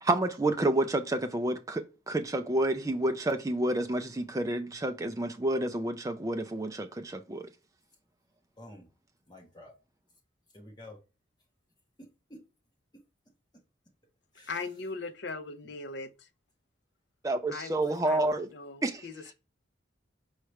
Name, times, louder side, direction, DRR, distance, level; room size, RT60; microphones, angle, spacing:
voice 1, 0.0-7.5 17.2-18.5 18.8-19.0, right 1 dB, 15° right, 0.4 m, -29 dB
voice 2, 8.6-8.9 9.3-9.7 10.5-11.0 12.0-12.4 12.9-13.0 14.3-14.6 15.6-15.7, left 1 dB, 20° left, 1.3 m, -50 dB
voice 3, 14.5-16.3 17.5-19.3, left 3 dB, 65° left, 0.5 m, -40 dB
4.8 x 3.2 x 3.1 m
head